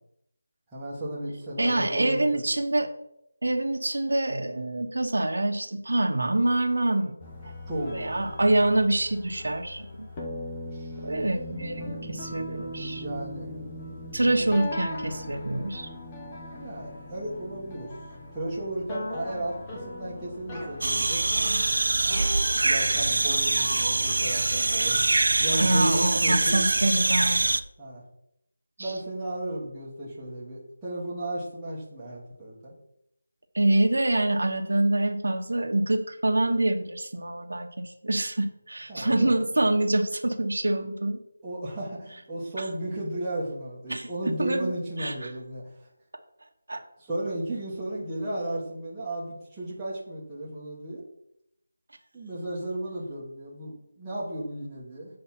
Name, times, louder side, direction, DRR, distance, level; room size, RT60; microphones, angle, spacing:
voice 1, 0.7-2.2 7.7-8.3 10.7-10.9 13.0-13.5 16.5-17.9 18.3-21.2 22.6-26.6 27.8-28.0 28.8-32.7 38.9-39.4 41.4-45.6 47.0-51.0 52.1-55.2, right 1 dB, 5° right, -10 dB, 1.2 m, -34 dB
voice 2, 1.6-2.9 3.4-7.5 7.9-10.1 11.0-13.0 14.1-15.9 25.5-27.4 28.8-28.9 33.5-41.2 42.6-42.7 43.9-44.1 44.4-44.7 45.0-45.3 46.7-46.8, right 1 dB, 80° right, 5 dB, 1.2 m, -26 dB
sound 1, 7.2-23.2, left 1 dB, 10° left, 0.7 m, -39 dB
sound 2, 20.8-27.6, right 2 dB, 50° right, 0.4 m, -24 dB
7.8 x 5.0 x 5.9 m, 0.78 s
figure-of-eight pair, 180°, 0 cm